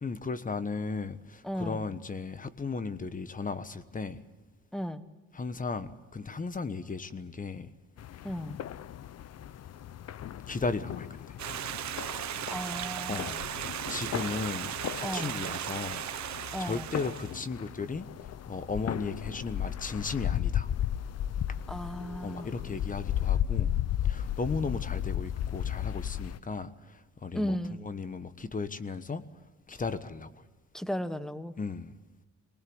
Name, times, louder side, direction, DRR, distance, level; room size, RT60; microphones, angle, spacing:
voice 1, 0.0-4.2 5.3-7.7 10.5-11.1 13.1-13.3 13.9-16.0 16.6-18.1 18.5-20.7 22.2-23.7 24.0-26.7 27.2-27.6 27.8-29.2 29.7-30.3 31.6-31.9, left 4 dB, 25° left, 13 dB, 1.2 m, -35 dB
voice 2, 1.4-1.9 4.7-5.1 8.2-8.6 12.5-13.4 15.0-15.4 16.5-16.9 21.7-22.5 27.3-27.8 30.7-31.5, equal, ahead, 12 dB, 1.3 m, -35 dB
sound 1, 8.0-26.4, left 10 dB, 55° left, 0.7 m, -35 dB
Stream, 11.4-17.5, right 11 dB, 65° right, 1.2 m, -37 dB
23.5 x 19.5 x 7.9 m, 1.2 s
cardioid pair, 90°, 30 cm